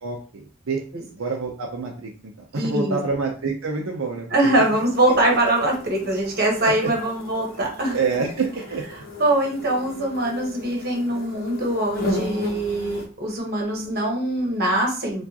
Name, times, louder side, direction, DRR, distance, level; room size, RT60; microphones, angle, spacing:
voice 1, 0.0-0.8 1.1-4.3 4.7-4.8 6.8-6.9 7.9-8.8, right 4 dB, 80° right, 0 dB, 0.6 m, -27 dB
voice 2, 2.5-3.0 4.3-8.0 9.2-15.2, right 1 dB, 50° right, 0 dB, 1.1 m, -23 dB
sound 1, 4.6-13.1, left 1 dB, 45° left, 0.9 m, -35 dB
4.5 x 2.4 x 2.8 m, 0.39 s
head